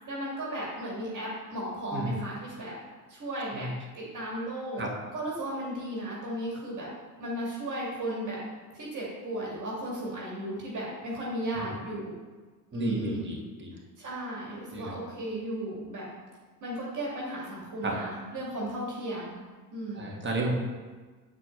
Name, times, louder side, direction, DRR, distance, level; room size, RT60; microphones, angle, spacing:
voice 1, 0.1-2.7 3.1-4.8 5.1-6.9 7.2-8.4 8.7-12.1 12.7-13.3 14.0-16.1 16.6-19.4 19.7-20.1, right 1 dB, 40° right, -4 dB, 2.4 m, -35 dB
voice 2, 12.7-13.7 14.7-15.0 17.8-18.0 20.0-20.5, right 2 dB, 25° right, -1 dB, 1.9 m, -32 dB
8.5 x 4.7 x 3.9 m, 1.4 s
figure-of-eight pair, 55°, 46 cm